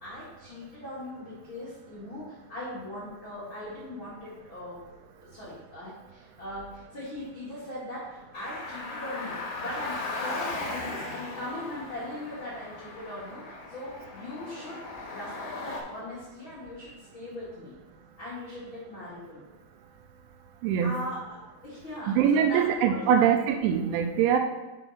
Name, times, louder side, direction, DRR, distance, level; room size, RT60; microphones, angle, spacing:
voice 1, 0.0-4.8 5.2-14.8 15.1-17.7 18.2-19.5 20.8-21.4 21.6-23.3, left 1 dB, 85° left, -9 dB, 1.1 m, -40 dB
Car, 8.3-15.8, left 3 dB, 65° left, 2.0 m, -37 dB
voice 2, 22.2-24.4, right 8 dB, 80° right, 5 dB, 2.8 m, -23 dB
7.0 x 4.6 x 5.6 m, 1.1 s
omnidirectional pair, 5.6 m